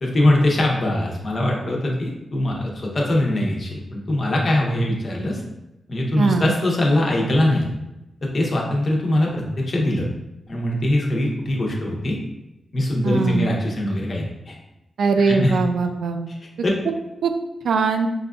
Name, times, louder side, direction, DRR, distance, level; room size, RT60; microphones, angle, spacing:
voice 1, 0.0-5.4 5.9-7.7 8.3-10.1 10.5-12.2 12.7-14.5 15.2-15.5 16.6-16.7, left 1 dB, 50° left, -1 dB, 0.8 m, -22 dB
voice 2, 6.2-6.5 13.0-13.5 15.0-16.2 17.2-17.3 17.6-18.1, right 4 dB, 80° right, 6 dB, 0.3 m, -20 dB
4.6 x 2.5 x 2.3 m, 0.93 s
cardioid pair, 75°, 0 cm